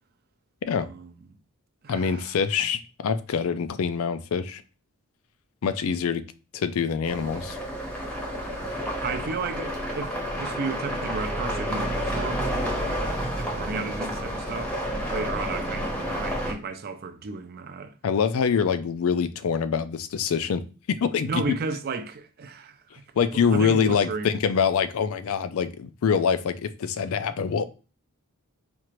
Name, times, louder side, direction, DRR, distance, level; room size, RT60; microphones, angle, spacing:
voice 1, 0.7-1.1 1.8-2.4 9.0-12.9 13.4-18.0 21.2-23.0 23.3-24.4, right 4 dB, 45° right, 0.5 m, -34 dB
voice 2, 1.9-4.6 5.6-6.2 6.5-7.6 18.0-21.4 23.2-27.6, left 6 dB, 65° left, 0.4 m, -25 dB
sound 1, 7.0-16.5, equal, 5° left, 0.8 m, -30 dB
4.3 x 2.5 x 3.1 m
head